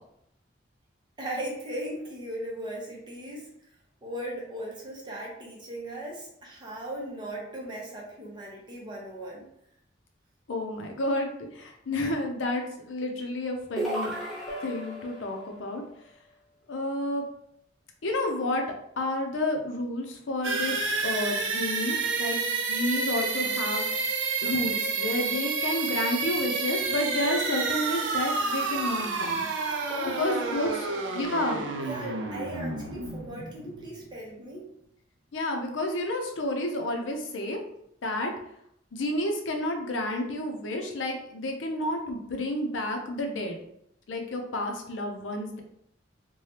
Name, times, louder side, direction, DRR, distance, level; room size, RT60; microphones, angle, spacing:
voice 1, 1.2-3.5 4.0-9.5 29.9-31.1 31.4-34.6, right 1 dB, 25° right, -3 dB, 0.8 m, -38 dB
voice 2, 10.5-14.1 14.6-15.8 16.7-17.2 18.0-18.6 19.0-22.4 22.7-23.9 24.4-29.5 30.1-30.9 31.1-31.6 35.3-37.6 38.0-38.3 38.9-43.6 44.1-45.6, left 1 dB, 90° left, 3 dB, 0.6 m, -30 dB
sound 1, 13.8-15.3, right 1 dB, ahead, 0.7 m, -33 dB
sound 2, 14.5-16.4, left 3 dB, 35° left, 0.6 m, -44 dB
sound 3, 20.4-34.1, right 4 dB, 75° right, 0.4 m, -30 dB
3.2 x 2.2 x 2.8 m, 0.74 s
head